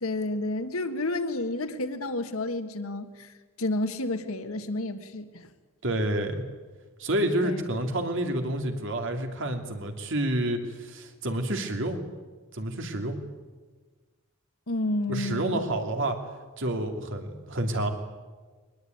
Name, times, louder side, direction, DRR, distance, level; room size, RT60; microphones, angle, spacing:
voice 1, 0.0-5.5 7.4-7.6 14.7-15.6, left 2 dB, 85° left, 9 dB, 1.7 m, -30 dB
voice 2, 5.8-6.4 7.0-12.0 12.5-13.2 15.1-16.2 16.6-17.9, right 1 dB, 65° right, 4 dB, 2.9 m, -29 dB
23.0 x 20.0 x 9.4 m, 1.4 s
head